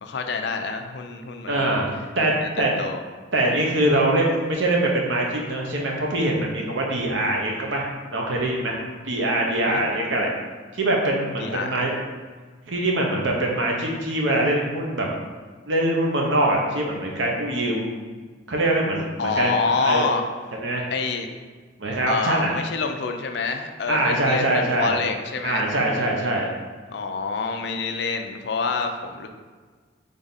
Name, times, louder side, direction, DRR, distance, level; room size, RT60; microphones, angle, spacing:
voice 1, 0.0-1.7 2.4-2.5 2.8-3.0 9.7-9.9 11.4-11.8 19.2-20.2 20.9-21.3 22.1-25.7 26.9-29.3, left 4 dB, 60° left, 5 dB, 0.4 m, -27 dB
voice 2, 1.5-2.3 2.6-2.7 3.3-8.8 9.0-10.3 10.7-12.0 12.7-15.1 15.7-18.0 18.5-20.1 20.5-20.8 21.8-22.5 23.9-25.0 25.4-26.5, right 1 dB, 70° right, -1 dB, 0.8 m, -23 dB
3.7 x 3.4 x 4.0 m, 1.5 s
head